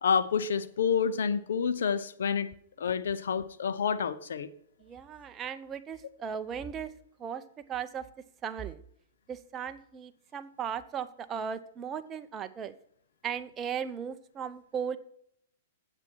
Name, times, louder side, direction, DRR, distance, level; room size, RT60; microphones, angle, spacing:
voice 1, 0.0-2.5 2.8-4.5, left 6 dB, 80° left, 12 dB, 0.7 m, -28 dB
voice 2, 4.8-6.9 7.2-7.4 7.7-8.0 8.4-8.8 9.3-12.7 13.2-15.0, right 7 dB, 25° right, 9 dB, 0.7 m, -37 dB
8.7 x 7.9 x 4.6 m, 0.68 s
hypercardioid pair, 130°, 0 cm